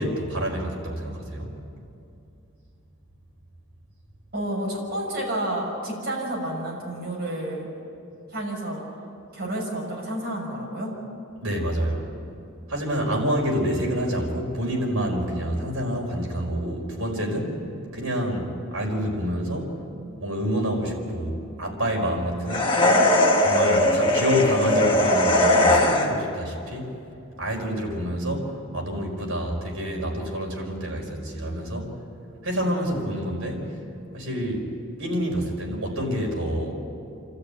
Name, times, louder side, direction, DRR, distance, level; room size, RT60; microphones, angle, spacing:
voice 1, 0.0-1.5 11.4-12.1 12.7-17.6 17.9-19.7 20.2-22.7 23.4-27.0 27.4-32.0 32.4-33.7 34.1-34.7 35.0-36.7, equal, 65° right, 0 dB, 4.9 m, -27 dB
voice 2, 4.3-7.7 8.3-8.8 9.3-10.9, right 1 dB, 45° right, -3 dB, 6.1 m, -30 dB
sound 1, 22.5-26.4, left 1 dB, 25° left, 1.6 m, -19 dB
28.0 x 13.5 x 9.1 m, 2.7 s
head